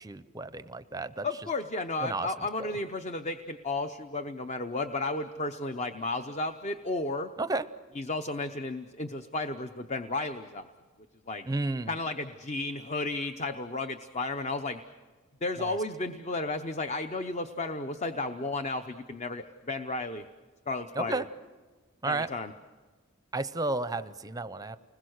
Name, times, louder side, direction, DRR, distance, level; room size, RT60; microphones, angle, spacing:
voice 1, 0.0-1.5 2.0-2.7 7.4-7.6 11.4-11.9 15.6-15.8 20.9-21.2 22.0-22.3 23.3-24.8, right 2 dB, 15° right, 13 dB, 0.6 m, -33 dB
voice 2, 1.2-7.3 7.9-10.7 11.3-11.4 11.9-14.8 15.4-20.2 20.7-21.2 22.1-22.5, left 2 dB, 30° left, 8 dB, 0.7 m, -33 dB
29.5 x 20.5 x 6.5 m, 1.4 s
head